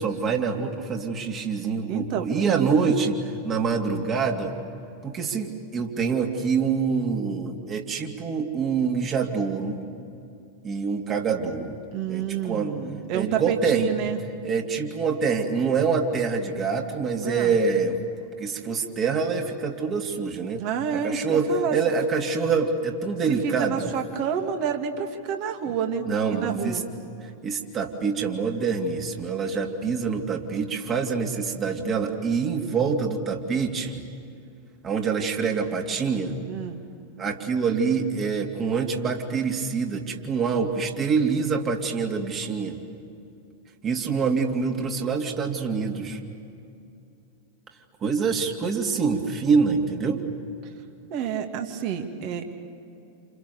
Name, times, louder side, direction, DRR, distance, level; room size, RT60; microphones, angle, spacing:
voice 1, 0.0-4.5 5.0-9.8 10.6-11.8 12.1-12.7 13.1-13.9 14.4-18.0 18.4-20.6 20.9-23.9 26.0-26.8 27.4-34.0 34.8-36.3 37.2-42.8 43.8-46.2 48.0-50.2, right 5 dB, 25° right, 2 dB, 2.9 m, -25 dB
voice 2, 1.9-2.7 11.9-14.2 17.2-17.6 20.6-21.8 23.4-26.8 36.5-36.8 51.1-52.5, right 8 dB, 40° right, 5 dB, 2.6 m, -29 dB
29.5 x 28.5 x 7.0 m, 2.7 s
figure-of-eight pair, 90°, 0 cm